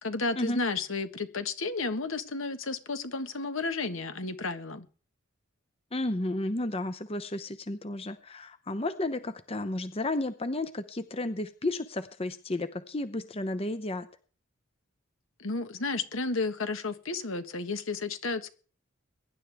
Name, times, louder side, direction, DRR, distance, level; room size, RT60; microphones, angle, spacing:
voice 1, 0.0-4.9 15.4-18.5, left 3 dB, 75° left, 10 dB, 1.5 m, -32 dB
voice 2, 5.9-14.1, left 2 dB, 30° left, 10 dB, 0.7 m, -32 dB
23.0 x 11.0 x 3.5 m, 0.39 s
head